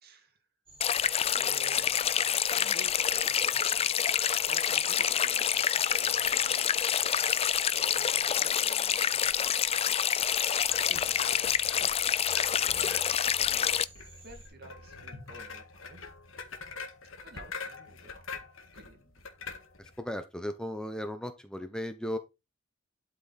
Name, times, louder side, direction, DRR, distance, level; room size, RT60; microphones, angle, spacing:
voice 1, 0.0-0.4 1.3-2.2 2.5-3.6 4.3-7.2 7.7-10.0 11.0-11.4 11.8-13.8 14.2-16.0 17.2-18.4 18.7-19.2, right 1 dB, 50° right, 2.4 m, -52 dB
sound 1, 0.7-14.5, right 2 dB, 25° right, 4.4 m, -55 dB
sound 2, 0.8-13.9, left 8 dB, 30° left, 0.4 m, -27 dB
sound 3, 10.7-20.0, left 4 dB, 70° left, 1.8 m, -45 dB
voice 2, 20.0-22.2, left 1 dB, 5° left, 0.8 m, -36 dB
12.0 x 5.9 x 4.3 m
head